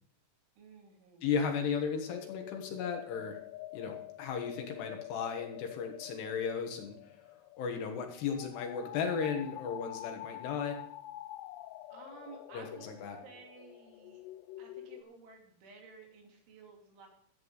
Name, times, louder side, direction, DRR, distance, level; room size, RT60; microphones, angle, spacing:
voice 1, 0.6-1.6 11.9-14.2 14.6-17.1, right 5 dB, 80° right, 0 dB, 5.1 m, -54 dB
voice 2, 1.2-3.4 3.7-6.9 7.6-10.8 12.5-13.2, left 6 dB, 70° left, 4 dB, 3.3 m, -35 dB
sound 1, 1.7-15.0, left 15 dB, 85° left, 2.4 m, -47 dB
14.0 x 9.2 x 4.1 m, 0.63 s
omnidirectional pair, 5.4 m